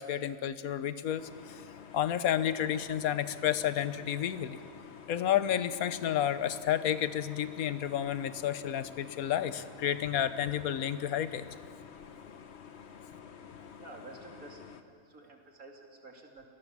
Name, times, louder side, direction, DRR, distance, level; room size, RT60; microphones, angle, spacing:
voice 1, 0.0-1.6 1.9-4.6 5.1-11.5, left 10 dB, 90° left, 13 dB, 1.3 m, -31 dB
sound 1, 1.2-14.8, left 7 dB, 55° left, 1.3 m, -50 dB
voice 2, 13.8-16.5, right 2 dB, 80° right, 1 dB, 3.2 m, -51 dB
30.0 x 18.0 x 7.4 m, 2.2 s
omnidirectional pair, 1.5 m